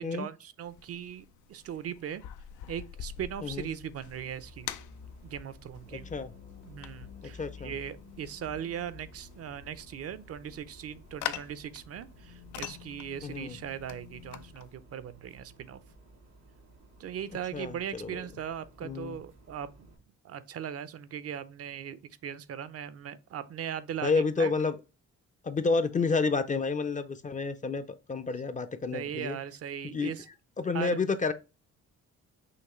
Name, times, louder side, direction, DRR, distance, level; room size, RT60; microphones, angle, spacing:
voice 1, 0.0-2.2 2.7-4.7 5.2-6.1 6.6-15.8 17.0-19.9 20.2-24.1 24.4-24.5 28.9-30.3 30.7-31.0, right 9 dB, 50° right, 0.5 m, -39 dB
sound 1, 0.7-14.8, left 11 dB, 80° left, 0.5 m, -45 dB
sound 2, 4.0-14.6, left 7 dB, 55° left, 1.0 m, -52 dB
sound 3, 4.1-20.0, right 2 dB, 90° right, 2.4 m, -57 dB
voice 2, 5.9-6.3 7.4-7.7 13.2-13.6 17.5-18.2 18.8-19.2 24.0-24.8 25.4-29.4 29.8-30.1 30.6-31.3, left 4 dB, 25° left, 0.5 m, -30 dB
5.8 x 2.9 x 3.0 m
cardioid pair, 90°, 30 cm